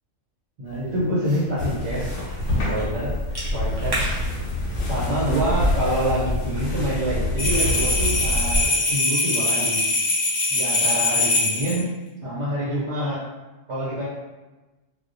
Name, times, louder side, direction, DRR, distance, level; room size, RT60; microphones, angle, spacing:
voice 1, 0.6-2.1 2.6-3.1 3.5-4.1 4.9-9.9 10.5-11.9 12.2-13.2 13.7-14.1, equal, 65° right, -8 dB, 1.0 m, -26 dB
Cough / Chewing mastication, 0.7-6.6, equal, 35° right, 0.3 m, -34 dB
sound 1, 1.6-8.7, left 1 dB, 85° left, 1.0 m, -26 dB
sound 2, 7.4-11.8, left 2 dB, 60° left, 0.7 m, -22 dB
2.3 x 2.1 x 2.5 m, 1.1 s
omnidirectional pair, 1.3 m